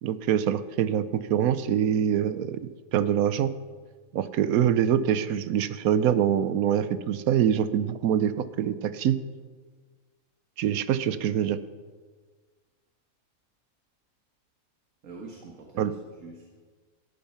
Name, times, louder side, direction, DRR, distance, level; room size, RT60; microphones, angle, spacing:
voice 1, 0.0-2.6 2.9-3.5 4.1-9.2 10.6-11.6 15.8-15.9, right 9 dB, 75° right, 14 dB, 1.1 m, -24 dB
voice 2, 15.0-16.5, right 3 dB, 60° right, 0 dB, 1.9 m, -44 dB
13.5 x 10.5 x 5.7 m, 1.5 s
omnidirectional pair, 1.5 m